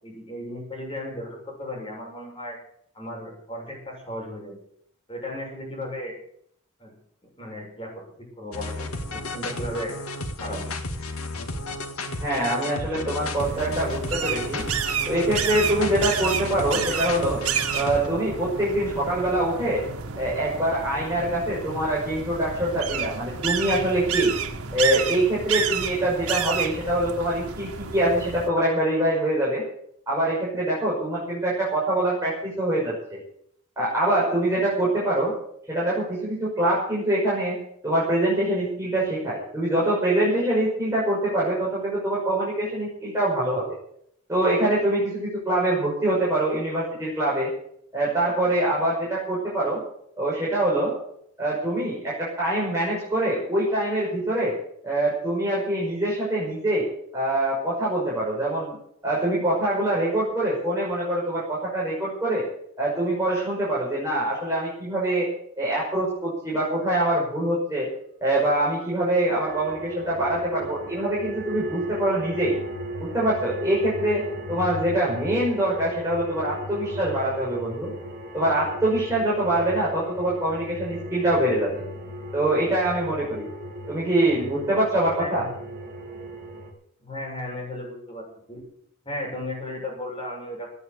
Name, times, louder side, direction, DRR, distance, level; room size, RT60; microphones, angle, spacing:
voice 1, 0.0-2.6 2.9-4.6 5.1-6.1 6.8-6.9 7.4-8.1 8.4-9.9 10.4-10.7 85.2-85.5 87.0-88.6 89.0-90.7, left 1 dB, 25° left, -1 dB, 7.0 m, -35 dB
sound 1, 8.5-18.1, left 2 dB, 85° left, 1.9 m, -33 dB
voice 2, 12.2-14.6 15.1-17.4 17.7-19.8 20.2-24.3 24.7-29.6 30.1-33.2 33.8-35.3 35.7-37.6 37.8-43.6 44.3-47.5 47.9-49.8 50.2-50.9 51.4-54.5 54.8-56.9 57.1-58.8 59.0-62.4 62.8-65.3 65.6-67.9 68.2-72.6 73.0-74.2 74.5-77.9 78.3-81.8 82.3-83.5 83.9-85.4, right 1 dB, 15° right, -6 dB, 5.8 m, -24 dB
sound 2, 13.4-28.5, right 7 dB, 90° right, 1.8 m, -30 dB
sound 3, 68.9-86.7, equal, 40° right, 4.8 m, -37 dB
17.0 x 9.2 x 8.2 m, 0.69 s
head